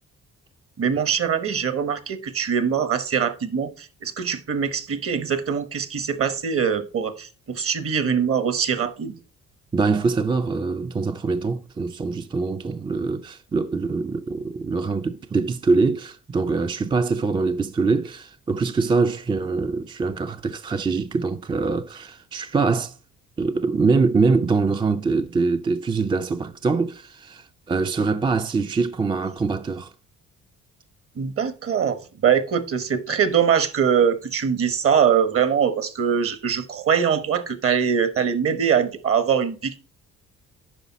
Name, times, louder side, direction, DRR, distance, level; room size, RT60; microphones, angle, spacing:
voice 1, 0.8-9.2 31.2-32.0 32.2-39.8, right 7 dB, 50° right, 1.1 m, -22 dB
voice 2, 9.7-23.0 23.4-29.9, right 4 dB, 15° right, 0.3 m, -23 dB
9.1 x 5.4 x 4.0 m
cardioid pair, 90°, 30 cm